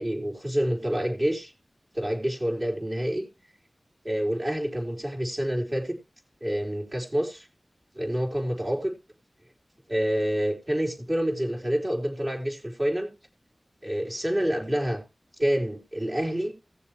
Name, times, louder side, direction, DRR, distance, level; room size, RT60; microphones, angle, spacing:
voice 1, 0.0-1.5 1.9-3.3 4.0-6.0 6.4-7.5 7.9-9.0 9.9-13.1 13.8-15.0 15.4-16.5, equal, 40° right, 3.9 m, -27 dB
18.0 x 7.0 x 3.2 m
wide cardioid pair, 60°, 0 cm